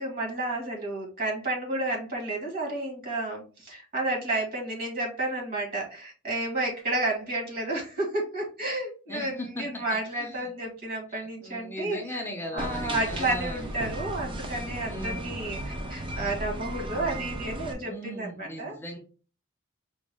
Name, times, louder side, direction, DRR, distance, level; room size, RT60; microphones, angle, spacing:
voice 1, 0.0-12.2 12.5-18.7, right 2 dB, 50° right, 0 dB, 1.8 m, -31 dB
voice 2, 9.1-9.8 10.1-10.5 11.1-13.6 14.8-15.3 17.8-19.0, left 1 dB, 10° left, 1 dB, 0.6 m, -38 dB
sound 1, 12.6-17.7, right 1 dB, 25° right, 0.6 m, -35 dB
5.1 x 2.4 x 3.4 m, 0.36 s
head